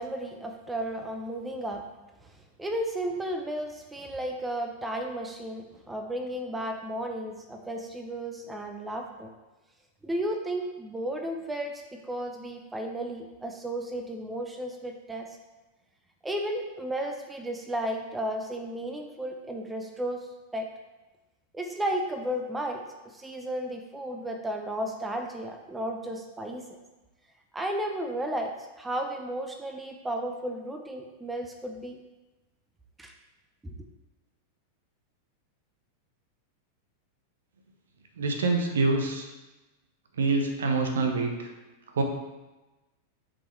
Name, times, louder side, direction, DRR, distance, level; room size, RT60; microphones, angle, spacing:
voice 1, 0.0-1.8 2.2-2.3 2.6-9.3 10.0-15.4 16.2-20.7 21.5-26.6 27.5-32.0 33.0-33.1 33.6-33.7, right 1 dB, 10° right, 4 dB, 0.8 m, -33 dB
voice 2, 38.2-39.3 40.2-41.5 41.9-42.0, right 3 dB, 65° right, 4 dB, 1.1 m, -26 dB
10.0 x 5.4 x 3.3 m, 1.1 s
figure-of-eight pair, 90°, 0 cm